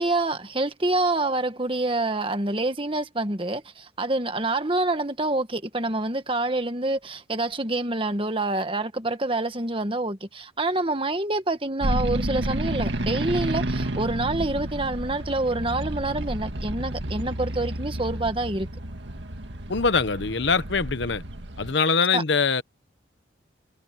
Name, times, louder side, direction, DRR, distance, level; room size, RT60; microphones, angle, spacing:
voice 1, 0.0-18.7 22.1-22.2, right 2 dB, 25° right, 1.6 m, -27 dB
sound 1, 11.8-21.7, right 1 dB, 70° right, 2.0 m, -30 dB
voice 2, 19.7-21.2 21.6-22.6, left 5 dB, 65° left, 1.0 m, -23 dB
head